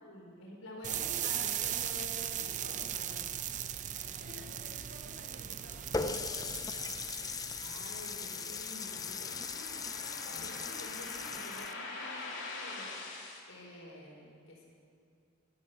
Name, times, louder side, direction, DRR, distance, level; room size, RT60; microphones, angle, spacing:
voice 1, 0.0-3.2 7.6-13.0 13.5-14.7, left 1 dB, 80° left, -1 dB, 4.1 m, -49 dB
sound 1, 0.8-8.7, right 10 dB, 35° right, 0.5 m, -38 dB
voice 2, 3.8-6.9, equal, 55° right, -2 dB, 4.7 m, -54 dB
sound 2, 5.6-13.4, left 3 dB, 60° left, 2.6 m, -45 dB
Water tap faucet, 5.9-11.7, left 5 dB, 15° left, 0.4 m, -39 dB
17.5 x 12.5 x 6.5 m, 2.4 s
head